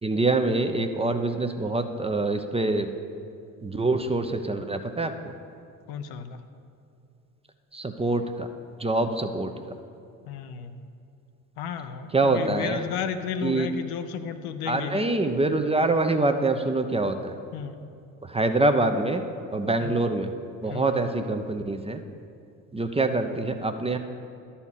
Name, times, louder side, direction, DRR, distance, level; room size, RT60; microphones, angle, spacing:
voice 1, 0.0-2.9 3.6-5.1 7.7-8.5 8.8-9.5 12.1-12.9 13.4-13.7 14.7-17.3 18.3-19.2 19.5-20.3 20.6-22.0 22.7-24.0, right 2 dB, 15° right, 6 dB, 0.7 m, -25 dB
voice 2, 5.9-6.4 10.3-10.7 11.6-15.1 17.5-17.8 19.8-20.1 20.7-21.0, left 8 dB, 65° left, 8 dB, 0.8 m, -33 dB
11.5 x 4.3 x 7.3 m, 2.5 s
hypercardioid pair, 55°, 41 cm